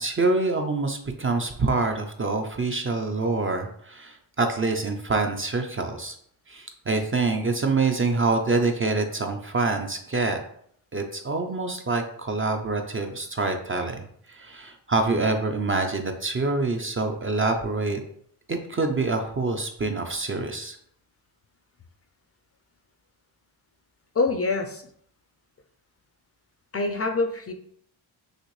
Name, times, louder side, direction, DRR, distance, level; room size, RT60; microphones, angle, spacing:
voice 1, 0.0-6.2 6.5-10.4 10.9-14.0 14.3-18.0 18.5-20.8, right 3 dB, 25° right, 4 dB, 0.5 m, -26 dB
voice 2, 24.1-24.8 26.7-27.5, left 3 dB, 30° left, 5 dB, 0.5 m, -25 dB
6.4 x 2.5 x 3.1 m, 0.66 s
cardioid pair, 95°, 49 cm